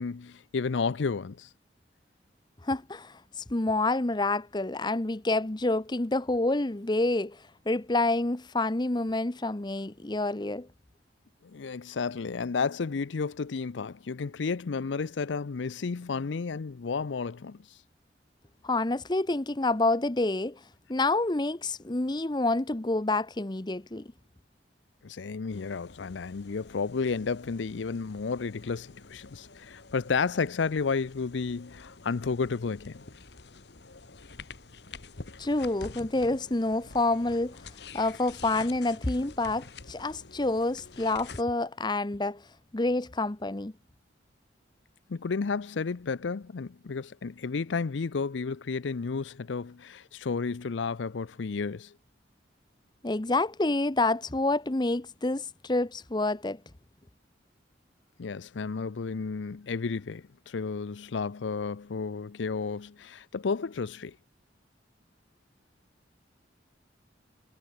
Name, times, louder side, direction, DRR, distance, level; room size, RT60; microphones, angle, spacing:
voice 1, 0.0-1.5 11.4-17.7 25.0-33.0 45.1-51.9 58.2-64.2, left 4 dB, 85° left, 0.6 m, -32 dB
voice 2, 2.6-10.7 18.6-20.6 20.9-24.1 35.4-37.6 37.9-42.5 42.7-43.7 53.0-56.6, left 2 dB, 25° left, 0.8 m, -28 dB
sound 1, 25.5-41.4, left 4 dB, 65° left, 1.4 m, -48 dB
head